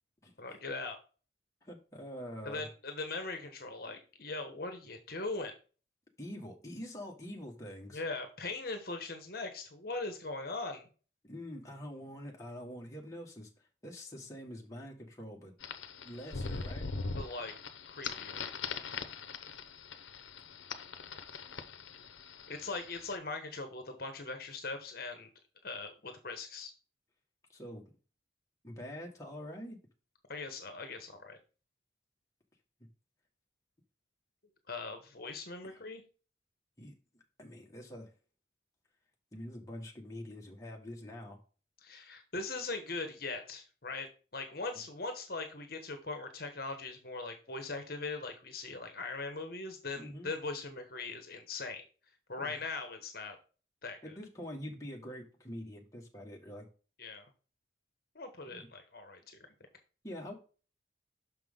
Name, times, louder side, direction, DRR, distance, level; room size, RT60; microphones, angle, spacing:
voice 1, 0.4-1.0 2.4-5.5 7.9-10.9 17.1-17.5 17.8-18.5 22.5-25.3 25.6-26.7 30.3-31.4 34.7-36.0 41.8-51.9 52.3-53.4 53.8-54.1 57.0-57.3 58.1-59.2, left 3 dB, 50° left, 1.2 m, -40 dB
voice 2, 1.6-2.7 6.2-8.0 11.2-15.5 16.0-16.9 27.5-27.9 28.6-29.8 35.6-35.8 36.8-38.1 39.3-41.4 49.9-50.3 52.4-52.6 54.0-56.7 58.4-58.7 60.0-60.3, equal, 15° left, 1.5 m, -45 dB
sound 1, 15.6-23.1, left 4 dB, 90° left, 0.8 m, -42 dB
6.3 x 5.9 x 3.6 m
head